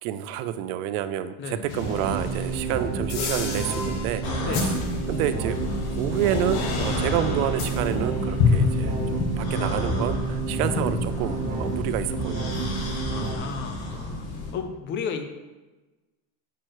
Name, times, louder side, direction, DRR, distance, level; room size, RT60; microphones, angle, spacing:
voice 1, 0.0-4.2 5.1-5.6 6.0-12.7, right 11 dB, 85° right, 12 dB, 0.6 m, -29 dB
voice 2, 1.4-1.9 4.5-4.7 13.1-14.1 14.5-15.2, left 6 dB, 30° left, 7 dB, 0.4 m, -33 dB
sound 1, 1.7-10.3 10.6-11.7, left 5 dB, 50° left, 1.1 m, -30 dB
sound 2, 1.8-13.4, right 4 dB, 35° right, 0.8 m, -30 dB
sound 3, 4.2-14.5, left 1 dB, 85° left, 1.9 m, -33 dB
6.1 x 4.6 x 4.6 m, 1.2 s
cardioid pair, 165°, 41 cm